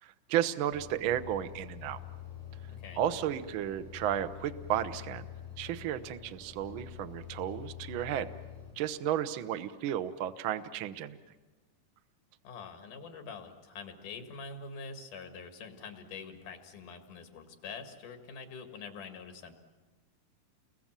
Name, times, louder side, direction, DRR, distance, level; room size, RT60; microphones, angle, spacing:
voice 1, 0.0-2.0 3.0-5.2 5.6-8.3 8.8-11.2, right 11 dB, 75° right, 10 dB, 1.1 m, -33 dB
sound 1, 0.7-8.7, left 9 dB, 20° right, 7.7 m, -47 dB
voice 2, 2.7-3.0 12.4-19.5, left 5 dB, 80° left, 6 dB, 3.5 m, -45 dB
30.0 x 21.5 x 7.4 m, 1.2 s
omnidirectional pair, 3.6 m